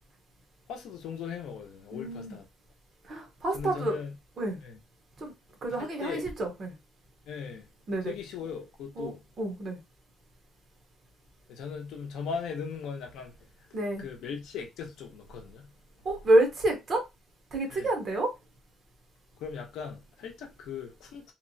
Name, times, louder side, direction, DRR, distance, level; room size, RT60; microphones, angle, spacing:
voice 1, 0.7-2.4 3.5-4.1 4.6-4.8 5.8-6.2 7.3-7.7 8.0-9.2 11.5-13.4 14.0-15.7 17.7-17.9 19.4-21.3, left 6 dB, 70° left, 0.6 m, -38 dB
voice 2, 1.9-2.4 3.0-4.0 4.4-4.6 5.2-5.3 5.6-6.7 7.9-8.1 9.0-9.1 9.4-9.8 13.7-14.0 16.0-17.0 17.5-18.3, right 1 dB, 35° right, 0.7 m, -28 dB
2.9 x 2.0 x 2.6 m
cardioid pair, 170°, 0 cm